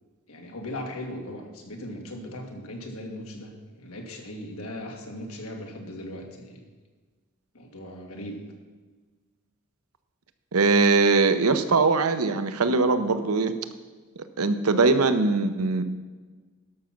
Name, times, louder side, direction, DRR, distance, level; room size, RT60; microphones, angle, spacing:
voice 1, 0.3-6.6 7.5-8.4, left 1 dB, 90° left, 2 dB, 1.9 m, -38 dB
voice 2, 10.5-13.6 14.4-15.8, right 3 dB, 85° right, 9 dB, 0.8 m, -21 dB
12.0 x 6.3 x 5.9 m, 1.4 s
head